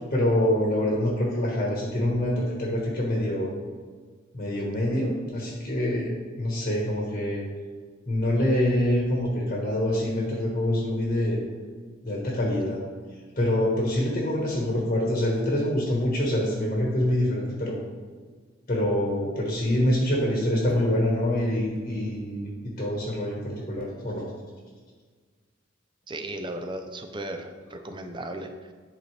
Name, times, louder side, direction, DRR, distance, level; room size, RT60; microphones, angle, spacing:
voice 1, 0.1-3.5 4.3-7.4 8.1-11.4 12.0-12.8 13.3-17.8 18.7-24.3, left 1 dB, 35° left, -3 dB, 1.3 m, -25 dB
voice 2, 26.1-28.5, right 1 dB, 25° right, 6 dB, 0.5 m, -35 dB
10.5 x 4.1 x 3.2 m, 1.5 s
head